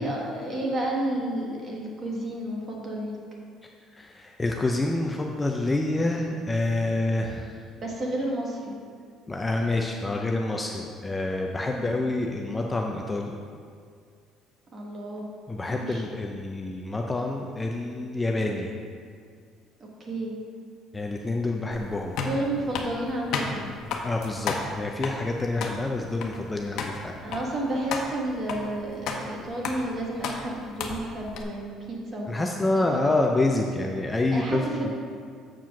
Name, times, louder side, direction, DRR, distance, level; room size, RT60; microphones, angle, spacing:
voice 1, 0.0-3.2 7.8-8.7 11.8-12.0 14.7-15.2 15.7-16.0 20.0-20.3 22.2-23.7 27.2-32.9 34.3-34.9, right 1 dB, 30° right, -2 dB, 1.5 m, -31 dB
voice 2, 3.6-7.6 9.3-13.3 15.5-18.7 20.9-22.2 24.0-27.2 32.3-34.9, left 2 dB, 15° left, 1 dB, 0.4 m, -27 dB
sound 1, 21.7-31.4, left 4 dB, 65° left, 0.9 m, -34 dB
7.5 x 4.7 x 5.8 m, 2.1 s
cardioid pair, 145°, 0 cm